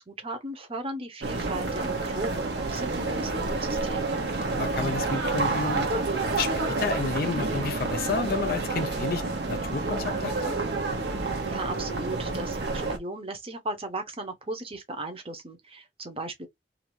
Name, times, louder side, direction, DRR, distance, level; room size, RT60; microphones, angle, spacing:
voice 1, 0.0-4.1 11.4-16.5, right 2 dB, 35° right, 0.8 m, -36 dB
sound 1, 1.2-13.0, right 3 dB, 70° right, 0.8 m, -29 dB
voice 2, 4.6-10.5, left 4 dB, 55° left, 0.6 m, -31 dB
2.6 x 2.6 x 3.0 m
head